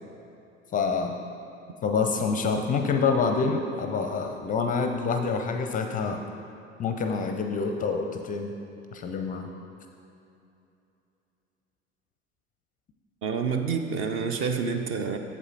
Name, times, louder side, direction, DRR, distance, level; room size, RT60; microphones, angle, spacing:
voice 1, 0.7-1.2 1.8-6.2 6.8-8.5 8.9-9.5, left 5 dB, 25° left, 5 dB, 0.5 m, -27 dB
voice 2, 13.2-15.2, right 5 dB, 35° right, 6 dB, 0.6 m, -28 dB
8.0 x 7.5 x 4.0 m, 2.7 s
figure-of-eight pair, 75°, 36 cm